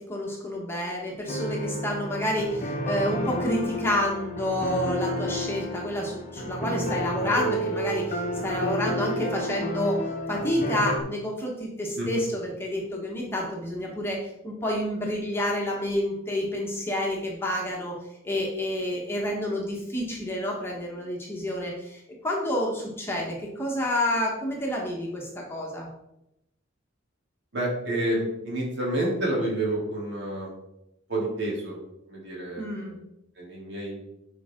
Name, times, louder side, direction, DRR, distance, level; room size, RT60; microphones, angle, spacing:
voice 1, 0.0-10.0 10.3-18.0 18.2-25.9 32.6-33.0, left 1 dB, 10° left, -2 dB, 1.4 m, -29 dB
sound 1, 1.3-11.0, equal, 35° left, 1.1 m, -31 dB
voice 2, 27.5-30.5 31.1-31.8 32.1-32.9 33.4-34.0, right 1 dB, 55° right, -4 dB, 3.1 m, -29 dB
11.0 x 4.9 x 3.7 m, 0.86 s
head